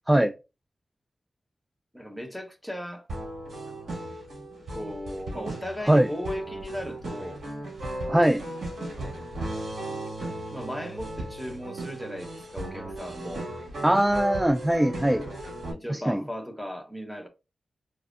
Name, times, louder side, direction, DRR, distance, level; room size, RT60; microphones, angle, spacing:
voice 1, 1.9-3.0 4.7-7.4 10.5-13.5 15.7-17.3, equal, 5° left, 1.0 m, -36 dB
sound 1, 3.1-15.7, right 1 dB, 70° right, 2.1 m, -36 dB
voice 2, 8.1-8.4 13.8-15.2 15.9-16.2, right 1 dB, 15° right, 0.3 m, -21 dB
3.3 x 3.2 x 2.5 m
cardioid pair, 50°, 0 cm